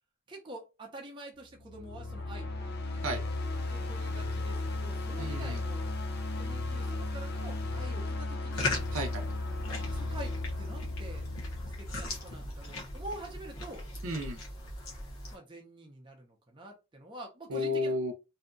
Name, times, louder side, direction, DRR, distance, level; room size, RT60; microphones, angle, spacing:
voice 1, 0.3-2.7 3.7-5.9 6.4-8.7 9.8-11.3 11.8-13.9 15.3-17.9, right 1 dB, 20° right, 0.5 m, -46 dB
sound 1, 1.6-12.6, left 2 dB, 45° left, 0.4 m, -35 dB
voice 2, 5.2-5.6 8.9-9.2 14.0-14.4 17.5-18.1, left 1 dB, 65° right, 0.6 m, -32 dB
sound 2, 8.5-15.4, left 2 dB, 65° left, 0.9 m, -39 dB
2.7 x 2.2 x 2.5 m
head